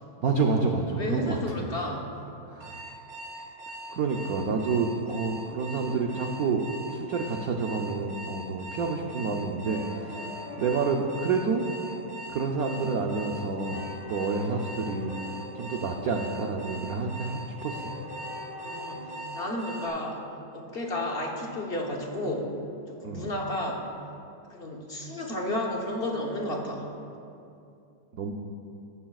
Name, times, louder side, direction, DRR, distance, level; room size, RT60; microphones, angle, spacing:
voice 1, 0.2-1.4 2.5-2.8 3.9-6.6 6.9-10.3 10.6-11.7 12.3-15.1 15.5-18.0 23.0-23.3 28.2-28.3, right 4 dB, 70° right, 1 dB, 0.8 m, -29 dB
voice 2, 1.0-2.0 18.6-19.1 19.3-20.2 20.5-22.5 22.9-23.9 24.5-26.9, left 1 dB, 40° left, 0 dB, 0.9 m, -32 dB
Alarm, 2.6-19.9, right 1 dB, 45° right, 3.0 m, -41 dB
sound 1, 9.0-20.1, left 3 dB, 70° left, 2.1 m, -46 dB
14.0 x 13.5 x 2.4 m, 2.6 s
omnidirectional pair, 2.3 m